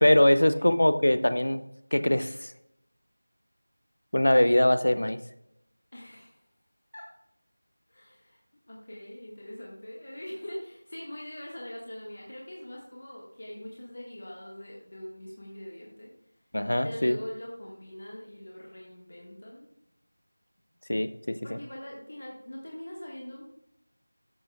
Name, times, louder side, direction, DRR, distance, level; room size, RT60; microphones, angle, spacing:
voice 1, 0.0-1.6 1.9-2.5 4.1-5.2 16.5-17.2 20.9-21.3, left 1 dB, 50° left, 11 dB, 0.5 m, -22 dB
voice 2, 5.9-6.4 6.9-7.1 7.9-8.4 8.7-16.1 16.8-19.7 21.4-23.4, left 1 dB, 30° left, -3 dB, 1.5 m, -42 dB
13.5 x 8.1 x 2.3 m, 0.76 s
figure-of-eight pair, 180°, 0 cm